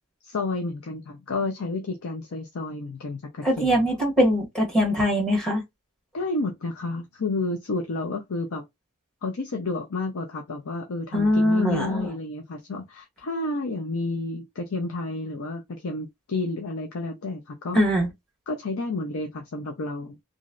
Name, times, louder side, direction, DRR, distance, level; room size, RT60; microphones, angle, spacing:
voice 1, 0.2-3.7 6.1-8.7 9.2-17.8 18.5-20.2, left 2 dB, 75° left, 0.6 m, -30 dB
voice 2, 3.4-5.6 11.1-12.1 17.7-18.1, equal, 5° left, 1.3 m, -22 dB
3.0 x 2.5 x 2.5 m
head